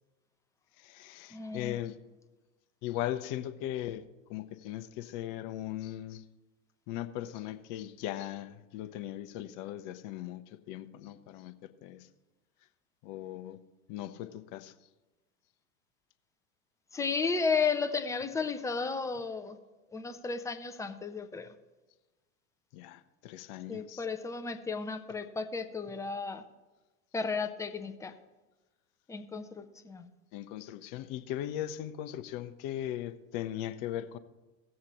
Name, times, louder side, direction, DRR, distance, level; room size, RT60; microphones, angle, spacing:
voice 1, 0.8-2.0 2.8-6.2 6.9-10.4 10.7-12.1 13.0-13.6 13.9-14.7 22.7-24.1 30.3-34.2, left 12 dB, 40° left, 0.8 m, -38 dB
voice 2, 1.3-1.8 16.9-19.6 19.9-21.5 23.7-26.4 27.1-28.1 29.1-30.1, left 5 dB, 5° left, 0.5 m, -33 dB
17.5 x 7.5 x 3.0 m
hypercardioid pair, 95°, 48 cm